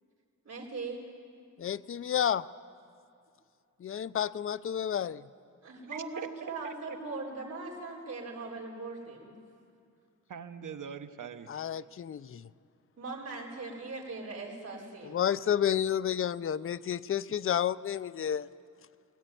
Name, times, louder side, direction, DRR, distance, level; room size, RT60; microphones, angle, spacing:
voice 1, 0.4-1.0 5.6-9.4 13.0-15.2, right 3 dB, 50° right, -3 dB, 4.5 m, -40 dB
voice 2, 1.6-2.4 3.8-5.2 11.5-12.5 15.0-18.5, left 9 dB, 45° left, 16 dB, 0.4 m, -30 dB
voice 3, 5.8-6.3 6.6-7.0 10.3-11.5, right 7 dB, 75° right, 9 dB, 1.1 m, -42 dB
21.0 x 18.0 x 9.3 m, 2.4 s
wide cardioid pair, 165°, 31 cm